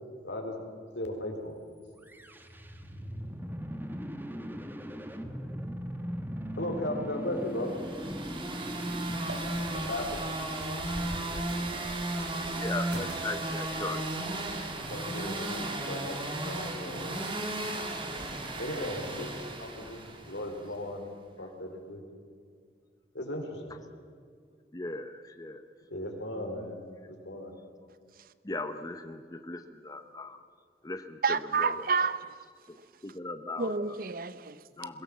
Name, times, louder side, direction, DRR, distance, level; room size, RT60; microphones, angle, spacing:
voice 1, 0.2-0.6 1.0-1.5 6.6-7.7 9.7-10.3 14.9-17.2 18.6-19.3 19.6-21.0 21.4-22.0 23.1-23.7 25.9-26.8 27.1-27.5 29.5-29.7, left 1 dB, 85° left, 3.6 m, -36 dB
sound 1, 2.0-10.1, equal, 10° right, 1.1 m, -39 dB
sound 2, 7.7-20.6, right 1 dB, 30° right, 2.1 m, -35 dB
sound 3, 9.1-14.5, right 1 dB, 70° right, 3.5 m, -47 dB
voice 2, 12.5-14.0 24.7-25.7 28.4-30.4 30.8-31.9 32.7-32.8 33.0-34.0 34.8-35.0, left 2 dB, 20° left, 0.8 m, -38 dB
voice 3, 31.2-32.3 33.6-34.6, right 5 dB, 50° right, 0.7 m, -29 dB
22.0 x 16.5 x 7.4 m
head